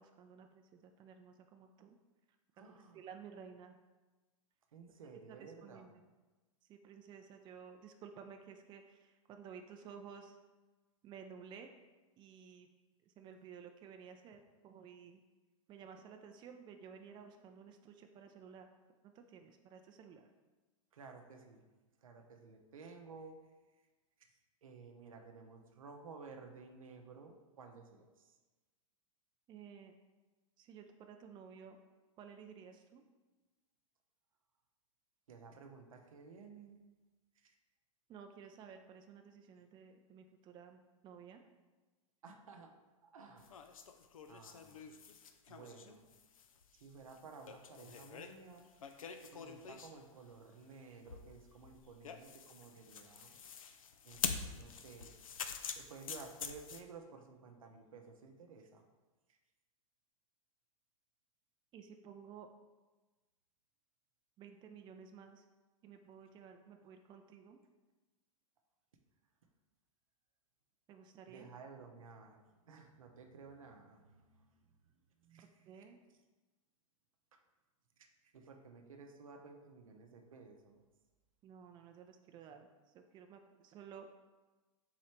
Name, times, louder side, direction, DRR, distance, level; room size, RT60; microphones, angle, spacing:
voice 1, 0.0-2.0 2.7-3.8 5.4-6.0 6.7-10.4 11.0-11.7 12.2-12.7 13.0-15.2 15.7-18.7 19.0-20.3 29.5-29.9 30.6-31.8 32.2-33.0 38.1-41.4 61.7-62.5 64.4-65.5 65.8-67.6 70.9-71.5 75.7-76.0 81.4-84.2, right 7 dB, 25° right, 6 dB, 0.4 m, -54 dB
voice 2, 2.5-3.1 4.7-5.9 20.9-21.6 22.0-23.4 23.7-23.9 24.6-28.4 35.3-36.8 37.3-37.5 42.2-42.7 43.0-43.8 44.3-45.0 45.5-46.1 46.7-53.4 54.0-55.2 55.7-58.9 59.3-59.4 71.3-75.8 77.3-77.4 78.0-80.8, right 4 dB, 80° right, 4 dB, 0.6 m, -55 dB
sound 1, 43.4-50.0 51.1-56.8, left 7 dB, 85° left, 0.4 m, -45 dB
3.8 x 3.1 x 4.4 m, 1.2 s
hypercardioid pair, 105°, 17 cm